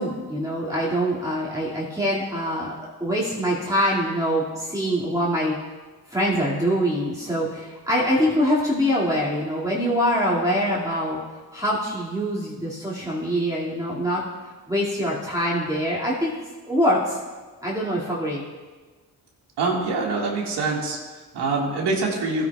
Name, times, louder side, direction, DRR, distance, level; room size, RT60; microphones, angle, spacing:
voice 1, 0.0-2.7 3.0-5.6 6.1-11.2 11.5-14.2 14.7-16.3 16.6-17.2 17.6-18.4, equal, 10° right, -7 dB, 2.3 m, -24 dB
voice 2, 19.6-22.5, right 3 dB, 90° right, -2 dB, 2.1 m, -25 dB
16.0 x 10.0 x 2.4 m, 1.3 s
cardioid pair, 75°, 39 cm